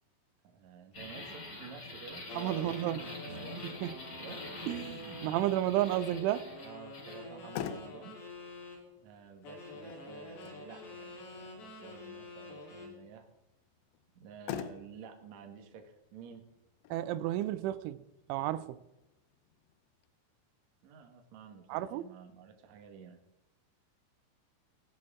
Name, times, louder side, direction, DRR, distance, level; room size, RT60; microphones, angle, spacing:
voice 1, 0.4-3.7 4.2-4.5 6.6-8.2 9.0-13.3 14.1-16.5 20.8-23.2, right 6 dB, 60° right, 2.0 m, -51 dB
sound 1, 0.9-7.2, left 2 dB, 25° left, 3.6 m, -46 dB
sound 2, 2.3-5.4 5.9-8.8 9.4-13.0, left 2 dB, 65° left, 5.7 m, -47 dB
voice 2, 2.4-3.0 3.6-4.0 4.7-6.5 16.9-18.8 21.7-22.0, right 13 dB, 90° right, 3.1 m, -32 dB
Motor vehicle (road), 7.2-20.1, left 9 dB, 85° left, 3.2 m, -48 dB
19.0 x 11.0 x 3.7 m
omnidirectional pair, 5.4 m